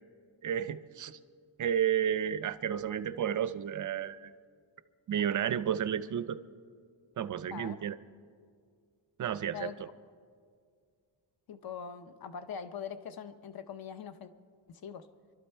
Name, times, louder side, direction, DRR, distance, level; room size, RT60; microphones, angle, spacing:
voice 1, 0.4-1.2 1.6-4.3 5.1-6.4 7.2-8.0 9.2-9.7, right 9 dB, 45° right, 14 dB, 0.4 m, -32 dB
voice 2, 7.5-7.8 9.5-9.8 11.5-14.3 14.7-15.1, left 7 dB, 50° left, 10 dB, 0.7 m, -42 dB
26.0 x 12.5 x 4.4 m, 2.2 s
wide cardioid pair, 165°, 48 cm